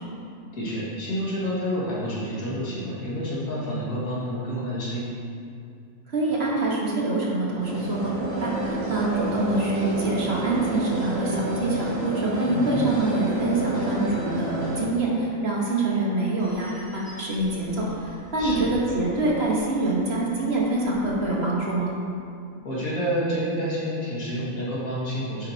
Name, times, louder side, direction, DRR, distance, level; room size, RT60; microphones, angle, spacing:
voice 1, 0.5-5.1 12.5-12.7 18.4-18.7 22.6-25.5, equal, 80° left, -7 dB, 2.4 m, -29 dB
voice 2, 6.1-21.9, right 2 dB, 50° right, -4 dB, 1.6 m, -25 dB
sound 1, 7.6-14.8, right 1 dB, 65° right, 2.8 m, -29 dB
sound 2, 16.4-21.4, equal, 10° left, 1.5 m, -47 dB
9.8 x 7.7 x 2.8 m, 2.4 s
omnidirectional pair, 1.5 m